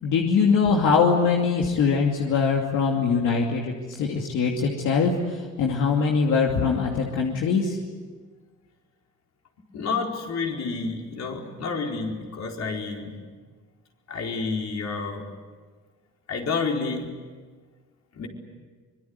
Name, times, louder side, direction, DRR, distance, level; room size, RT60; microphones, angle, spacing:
voice 1, 0.0-7.8, left 5 dB, 80° left, 0 dB, 2.7 m, -22 dB
voice 2, 9.7-13.2 14.1-15.2 16.3-17.1 18.1-18.3, left 4 dB, 60° left, 1 dB, 4.7 m, -29 dB
25.0 x 22.5 x 9.7 m, 1.5 s
cardioid pair, 90°, 30 cm